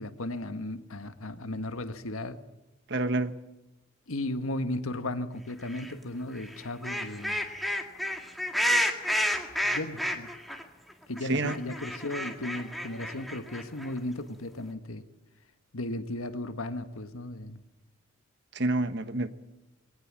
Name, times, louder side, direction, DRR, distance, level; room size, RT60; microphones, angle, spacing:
voice 1, 0.0-2.4 4.1-7.5 9.6-10.3 11.1-15.0 15.7-17.6, left 1 dB, 85° left, 1.6 m, -35 dB
voice 2, 2.9-3.3 11.3-11.6 18.5-19.3, right 2 dB, 55° right, 1.3 m, -27 dB
sound 1, 5.7-5.9 6.4-10.6 10.9-11.0 11.2-14.0, equal, ahead, 1.9 m, -30 dB
21.0 x 18.0 x 7.5 m
head